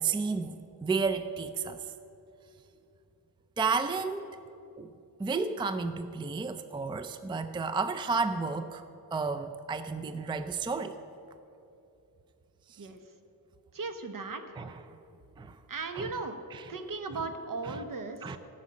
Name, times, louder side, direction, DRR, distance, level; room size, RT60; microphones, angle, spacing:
voice 1, 0.0-1.9 3.6-4.3 4.8-4.9 5.2-8.8 9.1-11.0 12.7-12.9 14.6-14.8 15.4-15.6 15.9-16.1 16.5-16.6 17.6-17.8 18.2-18.4, right 4 dB, 15° right, 10 dB, 0.4 m, -32 dB
voice 2, 13.7-14.6 15.7-16.4 16.7-18.4, right 3 dB, 55° right, 7 dB, 1.2 m, -37 dB
14.0 x 6.3 x 8.5 m, 2.7 s
wide cardioid pair, 110°, 38 cm